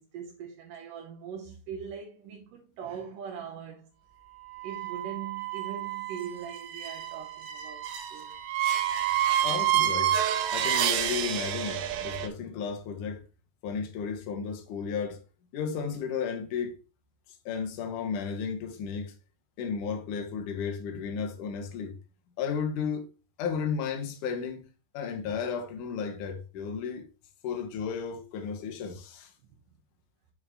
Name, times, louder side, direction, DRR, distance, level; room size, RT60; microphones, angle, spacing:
voice 1, 0.0-3.9 4.6-8.4, right 7 dB, 70° right, 2.1 m, -41 dB
sound 1, 4.6-12.3, right 11 dB, 85° right, 3.3 m, -29 dB
voice 2, 9.4-13.3 13.6-15.2 15.5-16.8 17.5-19.1 19.6-21.9 22.4-23.1 23.4-24.7 24.9-27.1 27.4-29.3, left 6 dB, 60° left, 2.3 m, -33 dB
9.3 x 4.5 x 3.7 m
omnidirectional pair, 5.1 m